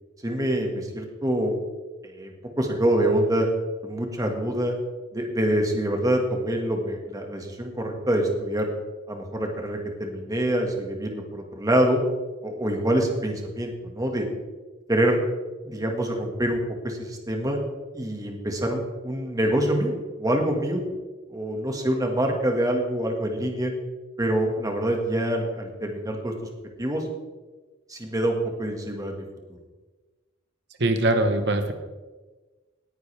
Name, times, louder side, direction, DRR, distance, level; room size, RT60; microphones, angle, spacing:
voice 1, 0.2-1.5 2.0-2.3 2.6-3.5 3.8-4.7 5.1-8.7 9.1-12.0 12.4-14.2 14.9-15.2 15.6-17.6 17.9-20.8 21.3-23.7 24.2-26.3 26.8-27.0 27.9-29.2, right 1 dB, 20° right, 2 dB, 1.8 m, -25 dB
voice 2, 30.8-31.7, right 2 dB, 60° right, 7 dB, 1.2 m, -22 dB
19.0 x 9.7 x 3.4 m, 1.3 s
head